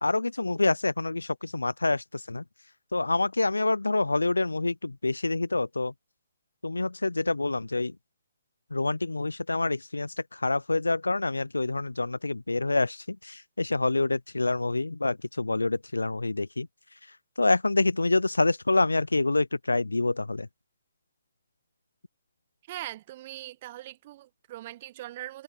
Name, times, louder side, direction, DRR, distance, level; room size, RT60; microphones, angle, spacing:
voice 1, 0.0-2.4 2.9-5.9 6.6-8.0 8.7-16.7 17.4-20.5, left 2 dB, 75° left, 0.7 m, -27 dB
voice 2, 22.7-25.4, right 15 dB, 35° right, 1.3 m, -41 dB
figure-of-eight pair, 135°, 0 cm